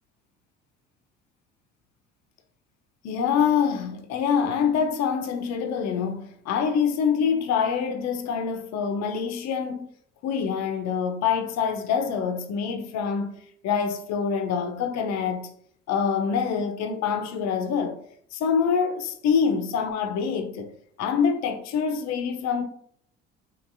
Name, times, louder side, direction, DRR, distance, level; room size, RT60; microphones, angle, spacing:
voice 1, 3.0-9.9 10.2-13.4 13.6-15.5 15.9-18.0 18.3-20.7 21.0-22.6, left 6 dB, 60° left, 0.5 m, -25 dB
2.9 x 2.6 x 2.4 m
hypercardioid pair, 65°, 32 cm